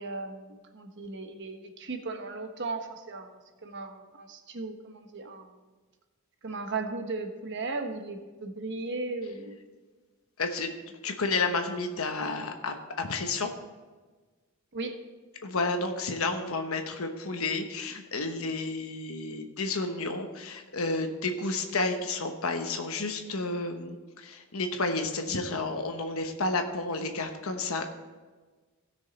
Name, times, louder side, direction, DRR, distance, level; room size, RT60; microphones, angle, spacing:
voice 1, 0.0-5.6 6.4-9.7 14.7-15.0, right 3 dB, 55° right, 5 dB, 1.1 m, -36 dB
voice 2, 10.4-10.7 11.0-13.5 15.4-27.8, left 3 dB, 75° left, 5 dB, 1.0 m, -31 dB
16.5 x 6.3 x 4.1 m, 1.3 s
head